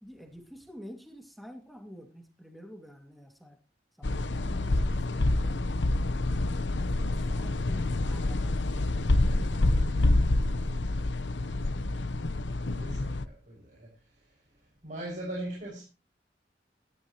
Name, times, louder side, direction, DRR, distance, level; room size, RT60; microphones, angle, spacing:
voice 1, 0.0-3.6 4.0-5.8 6.4-9.1 9.3-10.8, equal, ahead, 2.3 m, -49 dB
sound 1, 4.0-13.2, left 2 dB, 90° left, 0.9 m, -27 dB
voice 2, 12.7-13.9 14.8-15.8, right 1 dB, 45° right, 6.3 m, -39 dB
17.0 x 13.0 x 3.0 m
head